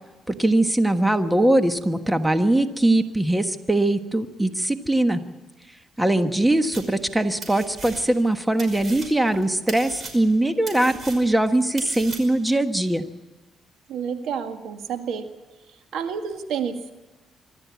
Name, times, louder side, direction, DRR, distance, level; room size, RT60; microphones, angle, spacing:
voice 1, 0.3-5.2 6.0-13.0, right 1 dB, 10° right, 8 dB, 1.3 m, -21 dB
sound 1, 6.7-7.1 7.4-8.3 8.6-12.5, right 3 dB, 45° right, 5.5 m, -38 dB
voice 2, 13.9-15.3 15.9-16.9, right 7 dB, 80° right, 7 dB, 1.9 m, -30 dB
25.5 x 13.0 x 8.3 m, 1.2 s
cardioid pair, 90°, 0 cm